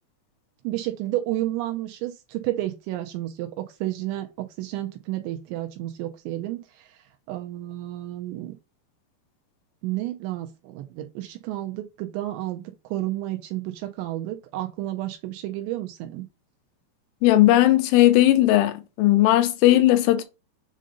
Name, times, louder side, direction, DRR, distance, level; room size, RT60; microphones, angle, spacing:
voice 1, 0.6-6.9 7.3-8.5 9.8-16.3, right 15 dB, 85° right, 2.6 m, -31 dB
voice 2, 17.2-20.2, left 15 dB, 85° left, 3.1 m, -17 dB
7.6 x 2.6 x 5.0 m
omnidirectional pair, 5.5 m